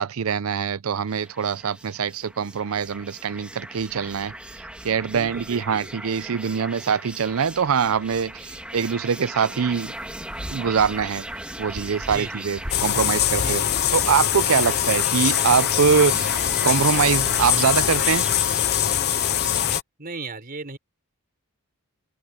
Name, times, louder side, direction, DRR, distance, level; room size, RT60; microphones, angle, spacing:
voice 1, 0.0-4.3 4.8-9.9 10.5-11.3 11.6-13.6 13.9-18.3, right 6 dB, 70° right, 0.5 m, -23 dB
sound 1, 1.1-19.8, right 1 dB, 5° right, 1.6 m, -37 dB
voice 2, 5.1-5.9 11.9-12.5 13.2-13.7 14.4-14.6 20.0-20.8, right 3 dB, 40° right, 4.6 m, -37 dB
sound 2, 9.6-16.0, equal, 20° right, 3.9 m, -42 dB
sound 3, 12.7-19.8, left 11 dB, 50° left, 0.6 m, -22 dB
open air
head